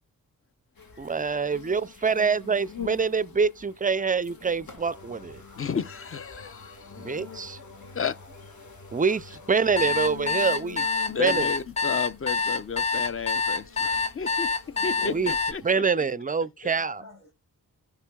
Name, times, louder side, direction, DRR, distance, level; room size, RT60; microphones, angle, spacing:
sound 1, 0.8-15.7, left 7 dB, 75° left, 1.9 m, -46 dB
voice 1, 1.0-5.4 7.0-7.6 8.9-10.9 11.2-11.5 15.0-15.3 15.6-17.0, right 5 dB, 25° right, 0.4 m, -25 dB
sound 2, 4.8-10.3, left 2 dB, 55° left, 1.7 m, -48 dB
voice 2, 5.6-6.9 7.9-8.1 11.1-14.5 14.8-16.0, left 6 dB, 40° left, 0.6 m, -32 dB
voice 3, 7.1-8.1 14.7-15.1 15.8-16.1 16.6-17.3, left 2 dB, 90° left, 3.1 m, -52 dB
sound 3, 9.8-15.5, left 4 dB, 20° left, 1.0 m, -26 dB
13.0 x 5.2 x 2.3 m
cardioid pair, 65°, 36 cm